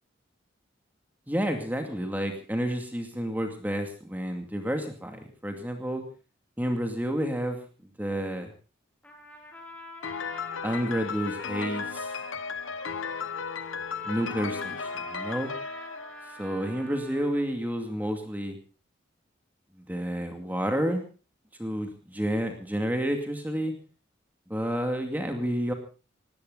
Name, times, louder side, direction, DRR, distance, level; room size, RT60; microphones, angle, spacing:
voice 1, 1.3-6.0 6.6-7.6 8.0-8.5 10.6-12.1 14.0-15.5 16.4-18.6 19.9-21.0 21.6-23.7 24.5-25.7, equal, 10° right, 4 dB, 2.4 m, -30 dB
Trumpet, 9.0-17.5, left 1 dB, 5° left, 3.5 m, -44 dB
Piano, 10.0-16.9, left 6 dB, 85° left, 1.0 m, -35 dB
19.0 x 17.0 x 4.0 m, 0.35 s
head